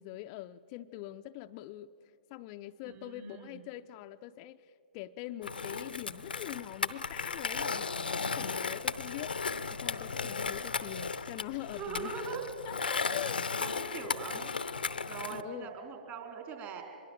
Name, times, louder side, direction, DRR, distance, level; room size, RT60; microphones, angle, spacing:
voice 1, 0.0-1.9 2.3-4.6 4.9-9.3 9.7-12.1 12.6-14.2 15.3-15.7, left 14 dB, 40° left, 9 dB, 0.5 m, -43 dB
voice 2, 2.8-3.6 11.8-12.5 13.6-14.5 15.0-16.8, right 6 dB, 35° right, 3 dB, 4.4 m, -41 dB
Skateboard, 5.4-15.4, left 5 dB, 80° left, 0.7 m, -35 dB
25.0 x 22.0 x 7.3 m, 2.7 s
figure-of-eight pair, 115°, 5 cm